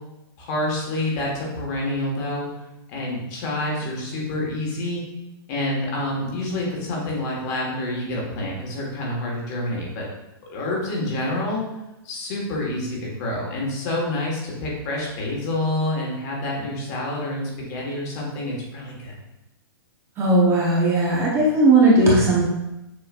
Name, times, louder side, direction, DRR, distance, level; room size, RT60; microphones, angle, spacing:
voice 1, 0.4-2.5 2.9-5.0 5.5-10.1 10.5-11.6 12.0-19.1, left 1 dB, 40° left, -2 dB, 1.6 m, -27 dB
voice 2, 20.2-22.4, right 2 dB, 20° right, -4 dB, 0.8 m, -17 dB
6.5 x 3.1 x 2.5 m, 0.94 s
hypercardioid pair, 145°, 13 cm